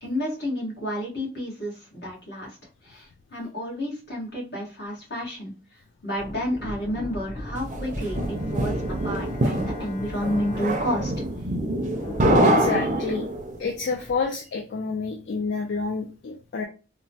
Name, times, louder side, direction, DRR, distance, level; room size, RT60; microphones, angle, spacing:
voice 1, 0.0-2.6 2.8-5.5 6.0-11.1, equal, 70° left, -4 dB, 1.3 m, -30 dB
sound 1, 6.2-14.3, left 1 dB, 30° left, 0.7 m, -39 dB
sound 2, 7.7-13.6, right 1 dB, 45° right, 0.4 m, -24 dB
Bowed string instrument, 8.0-12.7, left 1 dB, 50° left, 1.1 m, -44 dB
voice 2, 12.4-13.3 13.6-16.6, left 4 dB, 90° left, 2 dB, 0.4 m, -29 dB
3.0 x 2.1 x 2.7 m, 0.33 s
head